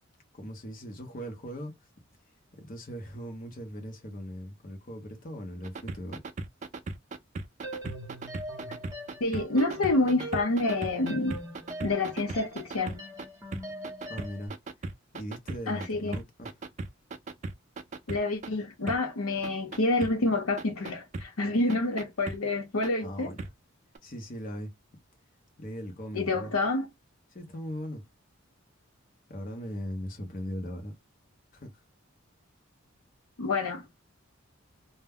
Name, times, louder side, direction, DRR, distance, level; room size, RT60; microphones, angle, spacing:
voice 1, 0.3-1.7 2.5-6.2 14.1-14.5 15.1-16.6 23.0-23.5 24.0-24.7 25.6-26.5 27.3-28.0 29.3-30.9 31.5-31.7, equal, 40° left, 0.7 m, -39 dB
sound 1, 5.6-13.2 13.5-15.9 16.1-18.5 18.9-19.0 19.4-20.1 20.6-21.2 21.7-22.4 22.8-22.9 23.4-23.5 23.9-24.0, right 3 dB, 35° right, 0.3 m, -37 dB
sound 2, 7.6-14.5, equal, 15° right, 0.8 m, -42 dB
voice 2, 9.2-11.4 11.8-13.0 15.7-16.2 18.1-23.3 26.1-26.9 33.4-34.0, left 2 dB, 85° left, 0.8 m, -28 dB
2.2 x 2.1 x 3.4 m
head